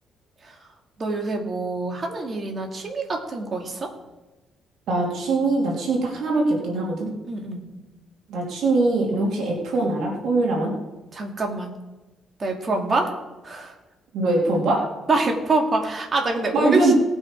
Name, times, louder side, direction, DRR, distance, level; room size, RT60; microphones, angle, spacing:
voice 1, 1.0-3.9 7.2-7.6 11.1-11.7 12.4-13.2 13.4-13.7 15.1-16.9, right 3 dB, 40° right, 1 dB, 2.7 m, -25 dB
voice 2, 4.9-7.1 8.3-10.7 14.1-14.9 16.5-16.9, right 2 dB, 75° right, -1 dB, 3.0 m, -22 dB
19.0 x 6.3 x 4.8 m, 1.1 s
cardioid pair, 90°, 0 cm